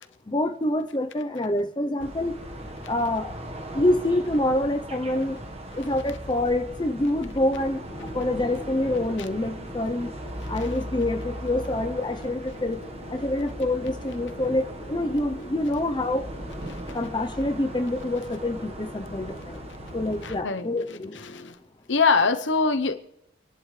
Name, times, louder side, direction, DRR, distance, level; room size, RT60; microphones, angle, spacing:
voice 1, 0.3-2.4 2.9-3.3 3.7-5.4 5.7-7.8 8.1-10.1 10.5-12.8 13.1-16.2 16.9-19.6 19.9-21.2, left 1 dB, 25° left, 0.7 m, -26 dB
sound 1, 2.0-20.4, right 1 dB, 30° right, 1.4 m, -38 dB
sound 2, 7.1-21.5, left 1 dB, 50° left, 2.5 m, -46 dB
voice 2, 20.2-20.7 21.3-21.4 21.9-22.9, left 4 dB, 70° left, 0.9 m, -22 dB
27.0 x 11.0 x 3.3 m
head